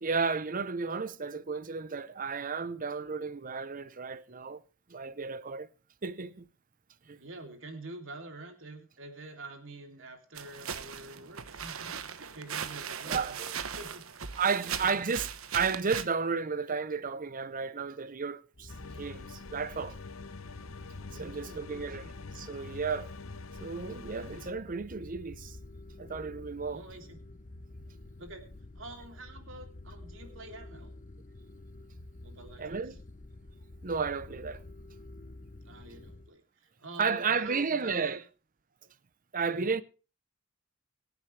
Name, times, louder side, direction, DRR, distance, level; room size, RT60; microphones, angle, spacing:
voice 1, 0.0-4.6 4.9-5.7 6.0-6.5 7.1-7.2 13.1-13.6 14.4-20.0 21.2-22.0 22.3-23.1 23.6-25.6 26.0-26.8 32.6-32.9 33.8-34.6 37.0-38.2 39.3-39.8, right 5 dB, 40° right, 0.8 m, -33 dB
voice 2, 7.0-14.3 14.8-14.9 21.1-22.1 26.7-27.2 28.2-28.4 28.7-30.9 32.2-33.0 35.6-38.2 39.6-39.7, right 2 dB, 65° right, 3.1 m, -47 dB
sound 1, 10.3-16.0, right 7 dB, 85° right, 1.1 m, -38 dB
sound 2, 18.5-36.3, left 2 dB, 40° left, 0.9 m, -49 dB
sound 3, 18.7-24.5, left 4 dB, 85° left, 0.9 m, -46 dB
24.0 x 8.1 x 3.3 m
head